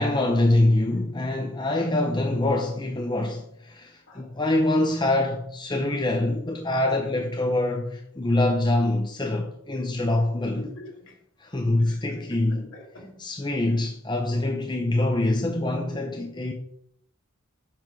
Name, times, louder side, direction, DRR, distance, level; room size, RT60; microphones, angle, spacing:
voice 1, 0.0-10.6 11.4-12.6 13.2-16.5, left 2 dB, 20° left, 0.7 m, -24 dB
voice 2, 10.6-11.2 11.8-12.0 12.5-13.2, left 2 dB, 60° left, 2.5 m, -43 dB
7.5 x 5.8 x 4.5 m
head